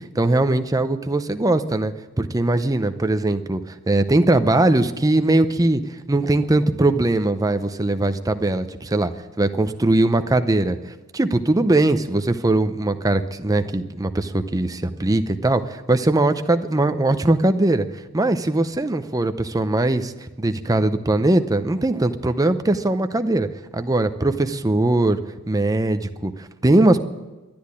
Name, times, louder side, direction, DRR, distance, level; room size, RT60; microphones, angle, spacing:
voice 1, 0.1-5.8 6.1-9.1 9.4-23.5 23.7-25.2 25.5-26.3 26.6-27.0, right 2 dB, 15° right, 9 dB, 0.6 m, -20 dB
12.5 x 10.5 x 9.7 m, 1.1 s
head